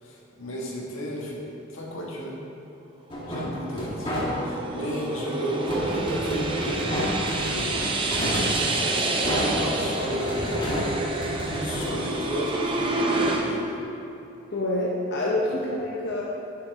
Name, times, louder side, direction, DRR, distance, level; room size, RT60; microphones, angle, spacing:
voice 1, 0.0-1.4 1.7-2.4 3.3-8.0 8.3-10.6 11.4-13.7, equal, 85° left, -3 dB, 1.6 m, -34 dB
Duct impacts, 3.1-4.7 5.7-12.8, equal, 25° left, 1.5 m, -30 dB
sound 1, 3.3-13.4, right 2 dB, 25° right, 0.7 m, -28 dB
voice 2, 14.5-16.2, left 1 dB, 55° left, -4 dB, 0.9 m, -27 dB
11.0 x 6.9 x 3.5 m, 2.7 s
head